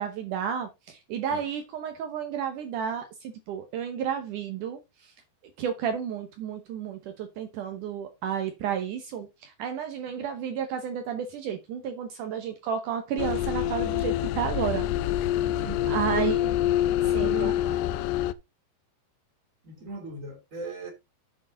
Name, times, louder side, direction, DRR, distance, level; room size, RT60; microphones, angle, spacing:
voice 1, 0.0-5.1 5.6-14.9 15.9-16.4 17.0-17.8, right 8 dB, 80° right, 1.8 m, -32 dB
sound 1, 13.2-18.3, left 12 dB, 80° left, 2.8 m, -26 dB
voice 2, 15.5-16.4 17.2-17.6 19.6-20.9, right 1 dB, 20° right, 2.6 m, -36 dB
8.7 x 7.2 x 3.9 m
omnidirectional pair, 5.1 m